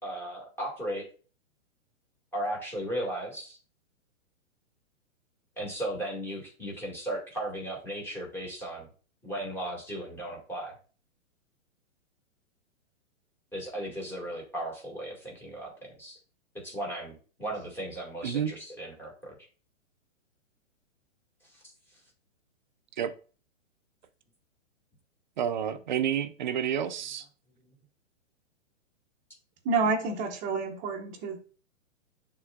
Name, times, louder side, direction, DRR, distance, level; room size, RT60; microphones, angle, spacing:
voice 1, 0.0-1.1 2.3-3.6 5.6-8.9 9.2-10.7 13.5-15.7 16.0-16.2 16.6-19.4 21.5-21.6, right 1 dB, 5° left, 1.9 m, -36 dB
voice 2, 18.2-18.5 23.0-23.2 25.4-27.3, right 9 dB, 40° right, 0.4 m, -29 dB
voice 3, 29.6-31.4, right 4 dB, 20° right, 0.9 m, -28 dB
11.0 x 3.7 x 2.3 m
hypercardioid pair, 155°, 39 cm